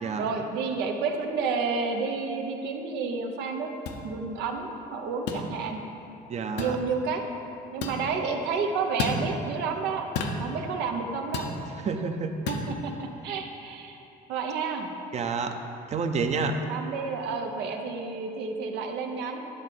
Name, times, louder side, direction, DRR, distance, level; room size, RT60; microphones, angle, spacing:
voice 1, 0.2-3.7 4.0-5.8 6.6-7.2 7.7-10.1 10.4-11.5 12.5-14.0 14.3-14.9 16.7-19.4, right 5 dB, 90° right, 3 dB, 0.9 m, -30 dB
sound 1, 3.9-4.0 5.3-5.5 6.6-6.8 7.8-8.0 9.0-9.2 10.1-10.4 11.3-11.6 12.5-12.7, left 4 dB, 85° left, 0.8 m, -30 dB
voice 2, 6.3-6.8 11.8-12.4 15.1-15.6 15.9-16.6, right 4 dB, 40° right, 6 dB, 0.7 m, -28 dB
10.5 x 3.8 x 6.7 m, 2.8 s
cardioid pair, 110°, 17 cm